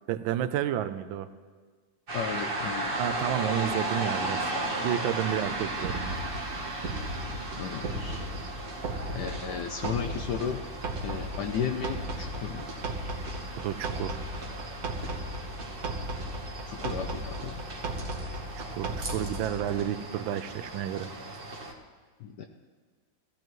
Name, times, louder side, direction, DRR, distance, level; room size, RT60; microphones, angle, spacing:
voice 1, 0.1-1.3 3.0-4.5 4.8-6.2 13.5-14.2 18.6-21.1, right 11 dB, 80° right, 12 dB, 1.4 m, -31 dB
voice 2, 2.1-2.9 7.6-8.2 9.1-10.6 11.0-12.7 16.7-17.6 22.2-22.5, left 7 dB, 70° left, 5 dB, 1.1 m, -34 dB
sound 1, 2.1-21.7, right 2 dB, 35° right, 1.1 m, -36 dB
sound 2, 5.4-19.8, right 1 dB, 55° right, 1.6 m, -37 dB
16.0 x 15.0 x 3.1 m, 1.5 s
omnidirectional pair, 2.1 m